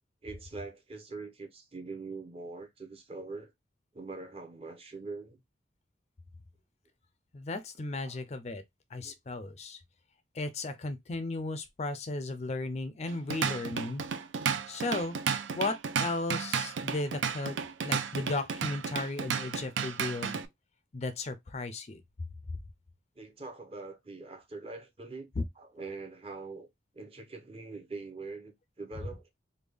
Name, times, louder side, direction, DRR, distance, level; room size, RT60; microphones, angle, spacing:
voice 1, 0.2-3.5 3.9-5.4 8.0-8.2 8.9-9.2 23.1-26.7 26.9-29.2, right 3 dB, 30° right, 0.7 m, -43 dB
voice 2, 7.3-8.6 8.9-9.8 10.3-14.0 14.7-15.1 15.5-20.4 20.9-22.0 25.4-25.5, left 2 dB, 35° left, 0.4 m, -35 dB
Drum kit / Drum, 13.1-20.5, right 6 dB, 80° right, 0.4 m, -33 dB
3.4 x 2.2 x 3.3 m
head